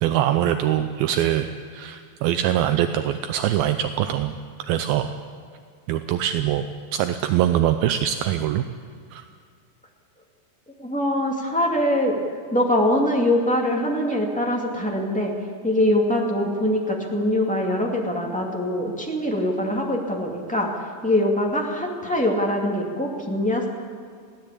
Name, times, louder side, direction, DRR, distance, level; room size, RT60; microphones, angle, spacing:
voice 1, 0.0-5.1 5.9-6.7 6.9-8.6 9.1-9.3, right 11 dB, 80° right, 9 dB, 2.2 m, -23 dB
voice 2, 10.8-12.2 12.5-15.3 15.6-20.7 21.0-23.7, left 1 dB, 5° left, -1 dB, 0.7 m, -23 dB
22.5 x 17.0 x 8.4 m, 2.1 s
omnidirectional pair, 5.0 m